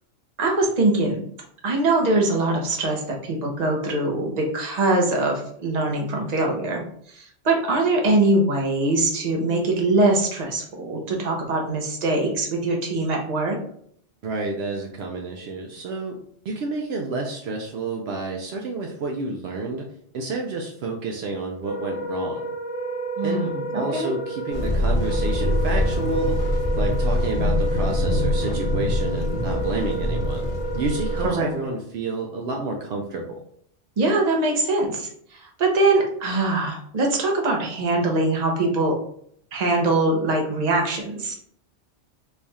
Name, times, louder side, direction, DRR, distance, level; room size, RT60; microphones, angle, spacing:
voice 1, 0.4-1.2 1.6-13.6 23.2-24.1 31.2-31.5 34.0-39.0 39.5-41.4, right 2 dB, 40° right, 0 dB, 0.8 m, -22 dB
voice 2, 14.2-16.2 16.4-19.9 20.1-22.5 23.2-26.5 26.8-33.4, right 3 dB, 70° right, 1 dB, 0.8 m, -30 dB
Wind instrument woodwind instrument, 21.6-31.7, right 2 dB, ahead, 1.0 m, -31 dB
sound 1, 24.5-31.3, left 1 dB, 65° left, 1.0 m, -24 dB
3.4 x 2.3 x 4.0 m, 0.66 s
omnidirectional pair, 1.1 m